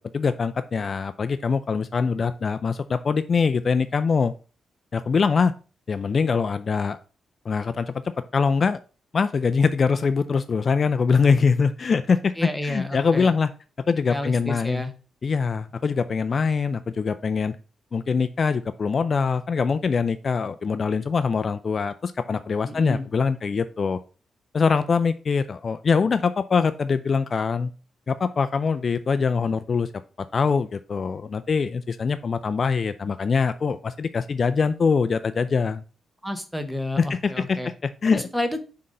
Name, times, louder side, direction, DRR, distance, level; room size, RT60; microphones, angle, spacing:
voice 1, 0.1-4.3 4.9-5.5 5.9-7.0 7.5-7.9 8.3-8.8 9.1-13.5 13.9-14.8 15.2-17.6 17.9-24.0 24.5-27.7 28.1-29.9 30.3-35.8 37.0-38.3, left 5 dB, 45° left, 11 dB, 0.3 m, -23 dB
voice 2, 12.4-13.3 14.1-14.9 22.7-23.1 36.2-37.7 38.0-38.6, left 1 dB, ahead, 8 dB, 0.9 m, -30 dB
5.8 x 3.8 x 5.3 m, 0.36 s
cardioid pair, 110°, 0 cm